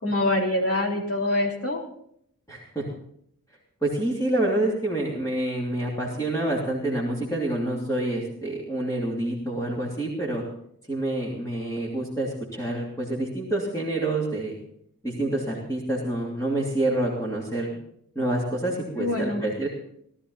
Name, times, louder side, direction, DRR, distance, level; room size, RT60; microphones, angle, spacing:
voice 1, 0.0-1.8 19.0-19.4, left 1 dB, 40° left, -1 dB, 3.7 m, -25 dB
voice 2, 2.5-2.9 3.8-10.4 10.9-14.6 15.0-17.8 18.1-19.7, right 1 dB, 10° left, -5 dB, 3.0 m, -27 dB
18.5 x 13.0 x 4.1 m, 0.69 s
wide cardioid pair, 115°, 34 cm